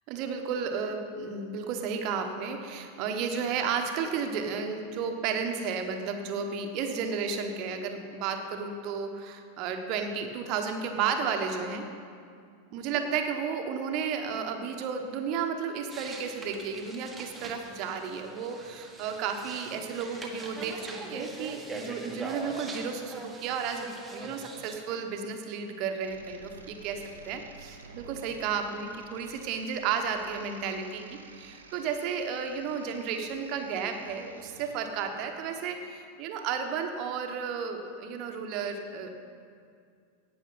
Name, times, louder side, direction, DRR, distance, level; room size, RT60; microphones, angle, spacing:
voice 1, 0.1-11.9 12.7-39.1, right 6 dB, 40° right, 5 dB, 1.3 m, -33 dB
sound 1, 15.9-24.8, right 2 dB, 10° right, 1.6 m, -42 dB
sound 2, 26.0-35.5, right 4 dB, 70° right, 1.1 m, -52 dB
17.5 x 6.9 x 5.7 m, 2.3 s
figure-of-eight pair, 90°, 0 cm